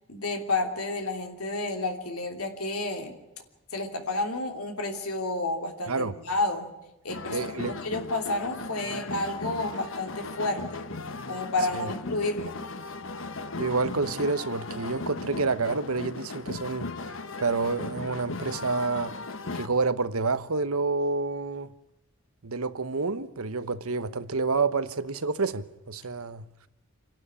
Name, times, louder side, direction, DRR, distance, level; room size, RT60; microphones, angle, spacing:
voice 1, 0.1-3.1 3.7-6.7 7.0-7.5 7.8-10.8 11.3-12.6, left 2 dB, 90° left, 3.1 m, -30 dB
sound 1, 7.1-19.7, left 3 dB, 65° left, 1.2 m, -37 dB
voice 2, 7.3-7.7 11.7-11.9 13.6-16.9 17.4-19.1 19.5-21.7 22.4-26.4, right 4 dB, 90° right, 1.1 m, -28 dB
27.5 x 12.0 x 9.9 m
head